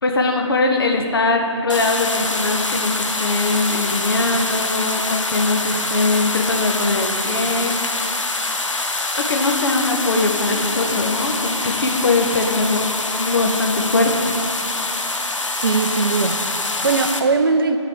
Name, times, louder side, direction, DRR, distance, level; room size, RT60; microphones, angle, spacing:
voice 1, 0.0-8.1 9.2-14.4, left 3 dB, 45° left, 2 dB, 1.0 m, -21 dB
sound 1, 1.7-17.2, left 2 dB, 80° left, 0.8 m, -25 dB
voice 2, 15.6-17.8, right 4 dB, 50° right, 7 dB, 0.5 m, -20 dB
10.5 x 4.0 x 6.6 m, 2.4 s
figure-of-eight pair, 150°, 16 cm